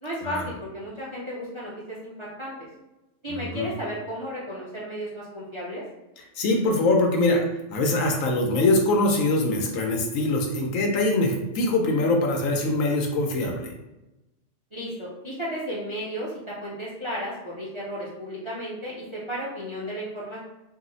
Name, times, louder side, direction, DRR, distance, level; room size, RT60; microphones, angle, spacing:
voice 1, 0.0-2.5 3.2-5.8 14.7-20.4, equal, 35° right, -6 dB, 0.5 m, -34 dB
voice 2, 3.3-3.7 6.4-7.4 7.7-13.7, left 2 dB, 85° left, 1 dB, 1.0 m, -23 dB
2.7 x 2.0 x 3.8 m, 0.98 s
omnidirectional pair, 1.3 m